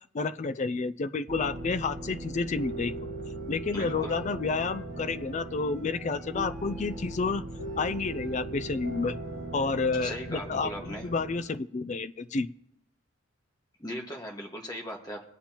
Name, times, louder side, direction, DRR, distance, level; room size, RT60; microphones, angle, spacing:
voice 1, 0.1-2.9 3.5-7.4 7.8-9.2 9.5-12.5, left 4 dB, 35° left, 12 dB, 0.3 m, -30 dB
sound 1, 1.3-11.4, right 2 dB, 70° right, 1.9 m, -39 dB
Wind instrument woodwind instrument, 3.3-11.6, right 2 dB, ahead, 2.4 m, -57 dB
voice 2, 3.7-4.2 10.0-11.1 13.8-15.2, equal, 20° left, -1 dB, 1.6 m, -38 dB
22.0 x 8.7 x 2.9 m, 0.83 s
head